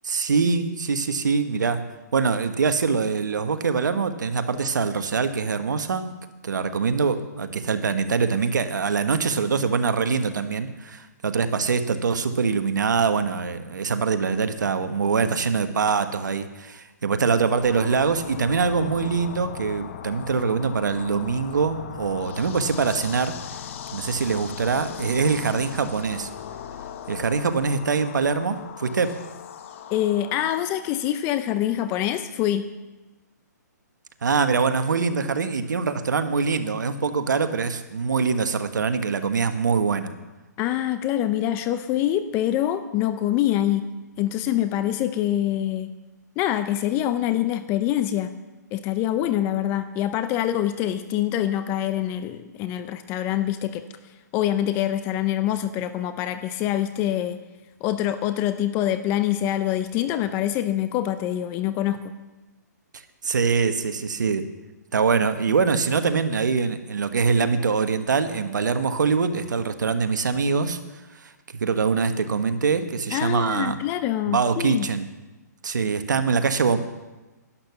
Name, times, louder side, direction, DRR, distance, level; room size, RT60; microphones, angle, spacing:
voice 1, 0.0-1.8 2.1-6.1 6.4-23.4 23.9-26.3 27.1-29.1 34.2-40.1 63.2-64.4 64.9-70.8 71.1-73.8 74.3-75.1 75.6-76.8, right 5 dB, 80° right, 9 dB, 1.3 m, -24 dB
sound 1, 17.6-30.7, left 9 dB, 40° left, 1.0 m, -38 dB
voice 2, 29.9-32.7 40.6-45.9 46.4-48.3 48.7-53.8 54.3-57.4 57.8-62.1 73.1-74.9, left 12 dB, 25° left, 11 dB, 0.6 m, -25 dB
11.5 x 11.0 x 6.9 m, 1.1 s
hypercardioid pair, 150°, 10 cm